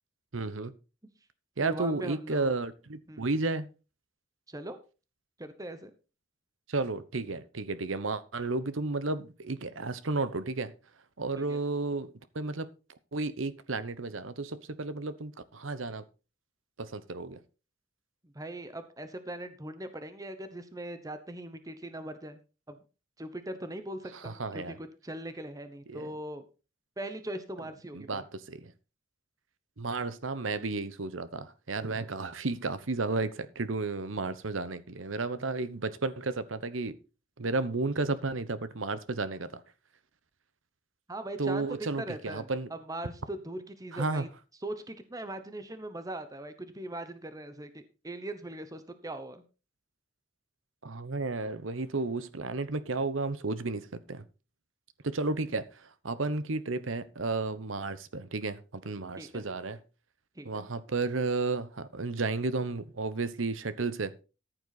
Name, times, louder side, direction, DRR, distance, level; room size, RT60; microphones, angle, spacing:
voice 1, 0.3-0.7 1.6-3.7 6.7-10.7 11.2-12.7 13.1-16.1 16.8-17.4 24.1-24.8 25.9-26.1 27.9-28.7 29.8-37.0 37.4-39.6 41.4-42.7 43.9-44.2 50.8-54.2 55.0-59.8 60.4-64.1, right 3 dB, 85° right, 1.0 m, -33 dB
voice 2, 1.6-2.5 3.1-3.3 4.5-4.8 5.4-5.9 11.4-11.6 18.3-22.4 22.7-22.8 23.2-26.4 27.0-28.2 41.1-41.7 42.0-44.3 44.6-49.4 59.2-59.4 60.4-60.7, right 1 dB, 20° right, 1.0 m, -40 dB
14.0 x 7.9 x 4.1 m
head